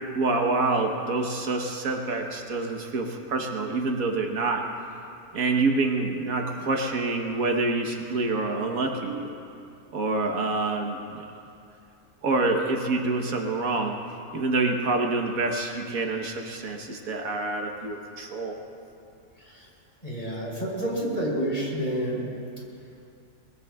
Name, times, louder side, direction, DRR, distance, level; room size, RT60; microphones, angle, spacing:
voice 1, 0.1-4.6 5.3-9.3 9.9-11.0 12.2-14.0 14.3-18.5, right 3 dB, 75° right, 2 dB, 1.6 m, -27 dB
voice 2, 20.0-22.3, right 1 dB, 30° left, -4 dB, 3.5 m, -29 dB
22.5 x 21.0 x 2.3 m, 2.6 s
omnidirectional pair, 1.5 m